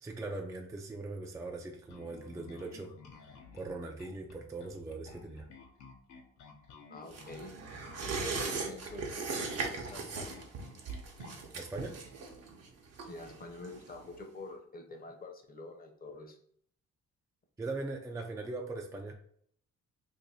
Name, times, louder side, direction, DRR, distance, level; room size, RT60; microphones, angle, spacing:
voice 1, 0.0-2.9 3.5-5.5 11.5-12.0 17.6-19.1, right 2 dB, 10° right, 2 dB, 0.4 m, -40 dB
Bass guitar, 1.9-11.5, left 4 dB, 70° left, 0.7 m, -54 dB
voice 2, 6.9-7.5 8.0-10.5 13.0-16.4, left 2 dB, 30° left, 4 dB, 0.7 m, -46 dB
sound 1, 7.1-14.2 14.5-14.6, right 4 dB, 55° right, 0.8 m, -39 dB
2.7 x 2.6 x 4.1 m, 0.64 s
cardioid pair, 90°, 30 cm